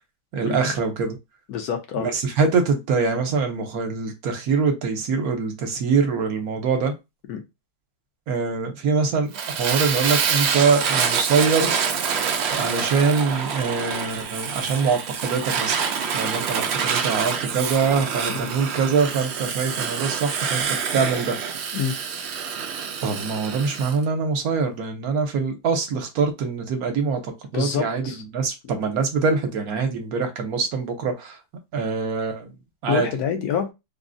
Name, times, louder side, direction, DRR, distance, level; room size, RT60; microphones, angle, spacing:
voice 1, 0.3-1.2 2.0-6.9 8.3-11.7 12.6-15.8 16.1-21.4 23.0-31.4 31.7-32.5 32.8-33.1, right 5 dB, 70° right, 1.2 m, -24 dB
voice 2, 1.5-2.1 7.3-7.4 18.3-18.5 21.7-22.0 27.5-28.2 32.9-33.7, left 8 dB, 75° left, 1.2 m, -26 dB
Fire, 9.3-24.0, right 6 dB, 85° right, 0.5 m, -26 dB
3.7 x 2.0 x 2.5 m
omnidirectional pair, 1.7 m